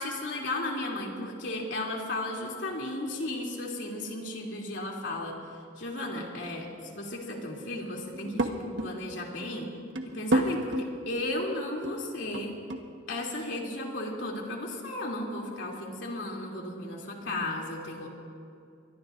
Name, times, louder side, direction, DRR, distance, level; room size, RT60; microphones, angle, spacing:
voice 1, 0.0-5.3 5.8-9.7 10.0-12.5 13.1-18.1, left 1 dB, 85° left, -1 dB, 2.9 m, -34 dB
sound 1, 8.1-8.9 9.4-9.5 9.8-10.9 11.3-11.4 11.8-12.9, right 1 dB, 85° right, 1.3 m, -29 dB
23.0 x 22.5 x 2.6 m, 2.5 s
head